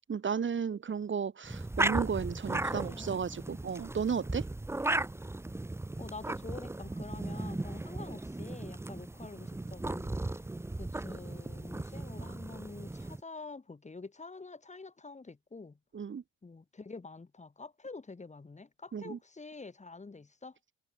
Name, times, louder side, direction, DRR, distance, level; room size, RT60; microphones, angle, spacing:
voice 1, 0.1-4.4 15.9-16.2 18.9-19.2, right 6 dB, 40° right, 1.8 m, -34 dB
sound 1, 1.4-13.2, right 2 dB, 10° right, 0.7 m, -36 dB
voice 2, 2.7-3.7 6.0-10.2 10.7-15.8 16.4-20.5, left 3 dB, 25° left, 2.6 m, -47 dB
cardioid pair, 90°, 30 cm